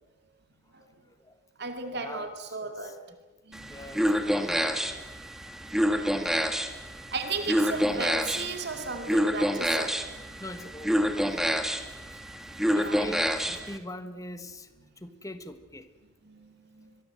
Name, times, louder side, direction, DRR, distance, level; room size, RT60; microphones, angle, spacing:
voice 1, 0.8-1.4 1.9-3.2 3.7-5.0 6.2-6.3 10.4-11.8 12.1-12.2 12.7-14.7 15.0-15.9, left 1 dB, 15° left, 10 dB, 1.4 m, -43 dB
voice 2, 1.6-2.9 3.5-3.7 5.9-6.2 7.1-9.9 12.7-13.0 16.2-16.9, right 4 dB, 55° right, 6 dB, 2.5 m, -35 dB
sound 1, 3.5-13.8, equal, ahead, 1.7 m, -28 dB
24.5 x 22.0 x 7.8 m, 1.2 s
head